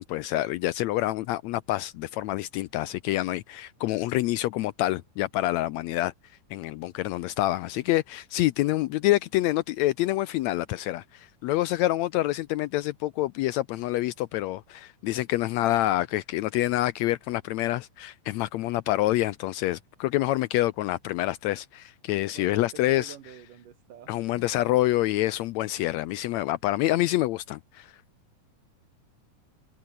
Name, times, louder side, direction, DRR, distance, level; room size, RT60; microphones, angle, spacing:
voice 1, 0.0-6.1 6.5-23.1 24.1-27.9, left 16 dB, 85° left, 1.6 m, -27 dB
voice 2, 22.3-24.3, right 10 dB, 80° right, 3.6 m, -47 dB
omnidirectional pair, 3.7 m